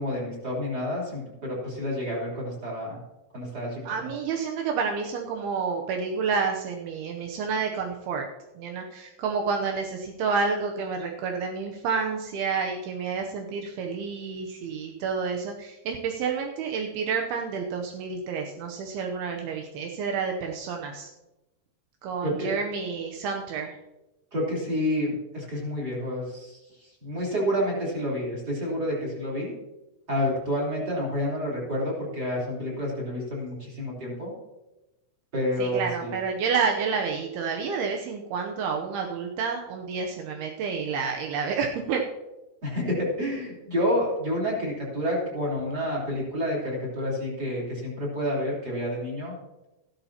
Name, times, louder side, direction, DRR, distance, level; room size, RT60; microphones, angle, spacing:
voice 1, 0.0-3.0 3.3-4.1 22.2-22.5 24.3-26.6 27.0-29.5 30.1-34.3 35.3-36.2 42.6-49.3, equal, 25° right, -4 dB, 3.7 m, -29 dB
voice 2, 3.8-8.3 8.6-21.1 22.0-23.8 35.6-42.0, right 5 dB, 80° right, 2 dB, 2.7 m, -29 dB
14.5 x 12.5 x 2.9 m, 1.0 s
omnidirectional pair, 4.6 m